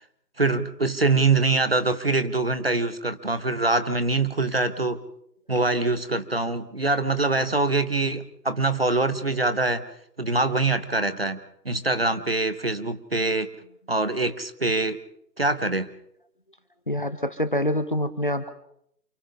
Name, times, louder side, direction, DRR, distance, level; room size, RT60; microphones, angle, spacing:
voice 1, 0.4-5.0 5.5-9.9 10.2-11.4 11.6-13.5 13.9-15.0 15.4-15.9, right 3 dB, 35° right, 11 dB, 1.3 m, -24 dB
voice 2, 16.9-18.5, left 1 dB, 30° left, 11 dB, 1.1 m, -26 dB
29.5 x 28.0 x 3.7 m, 0.72 s
figure-of-eight pair, 165°, 50 cm